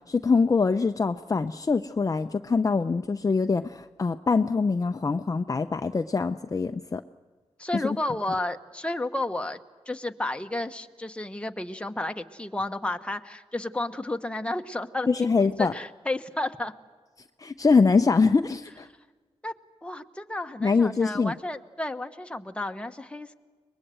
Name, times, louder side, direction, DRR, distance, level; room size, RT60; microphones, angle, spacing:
voice 1, 0.1-7.0 7.7-8.0 15.1-15.7 17.4-18.9 20.6-21.3, left 4 dB, 30° left, 8 dB, 0.6 m, -24 dB
voice 2, 7.6-9.6 9.9-15.3 15.6-16.7 19.4-19.5 19.8-23.3, left 2 dB, 10° left, 6 dB, 1.2 m, -32 dB
23.0 x 21.0 x 7.8 m, 1.5 s
cardioid pair, 65°, 11 cm